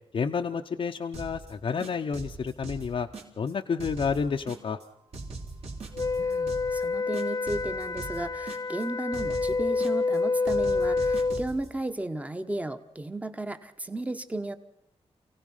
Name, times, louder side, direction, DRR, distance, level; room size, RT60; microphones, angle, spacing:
voice 1, 0.1-3.1 3.4-4.8, left 6 dB, 55° left, 3 dB, 0.8 m, -30 dB
sound 1, 1.1-1.5 1.8-3.5 3.8-4.8 5.1-6.8 7.1-8.8 9.1-10.2 10.5-11.7, right 3 dB, 65° right, 3.5 m, -41 dB
Wind instrument woodwind instrument, 5.9-11.4, left 3 dB, 30° left, 1.0 m, -28 dB
voice 2, 6.2-14.6, right 2 dB, 10° right, 10 dB, 1.1 m, -34 dB
29.0 x 16.5 x 5.6 m, 0.76 s
wide cardioid pair, 150°, 11 cm